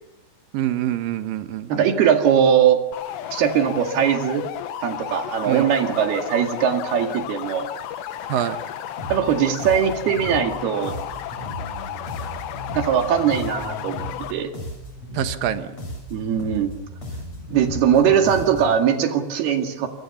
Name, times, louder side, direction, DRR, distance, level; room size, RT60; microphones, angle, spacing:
voice 1, 0.5-1.9 5.5-5.6 8.3-8.6 15.1-15.8, right 11 dB, 75° right, 10 dB, 2.1 m, -25 dB
voice 2, 1.7-2.8 3.3-4.4 4.8-7.7 9.1-11.0 12.7-14.5 16.1-16.7 17.5-19.9, right 8 dB, 60° right, 5 dB, 3.8 m, -20 dB
sound 1, 2.9-14.3, left 11 dB, 70° left, 3.3 m, -33 dB
sound 2, 9.0-18.9, left 1 dB, 35° left, 7.9 m, -35 dB
28.5 x 22.5 x 7.1 m, 0.87 s
omnidirectional pair, 5.5 m